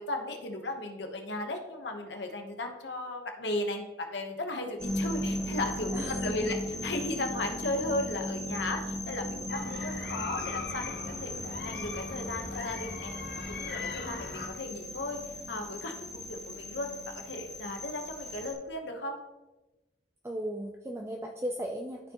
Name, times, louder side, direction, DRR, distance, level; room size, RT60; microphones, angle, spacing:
voice 1, 0.0-11.3 11.6-15.2 15.5-19.2, left 2 dB, 80° left, 4 dB, 1.0 m, -36 dB
sound 1, 4.8-18.5, left 1 dB, 5° left, 1.4 m, -37 dB
voice 2, 5.9-6.5 20.2-22.1, right 1 dB, 15° right, 2 dB, 0.4 m, -36 dB
sound 2, 9.5-14.5, left 4 dB, 60° left, 0.8 m, -40 dB
13.0 x 4.6 x 2.9 m, 1.1 s
head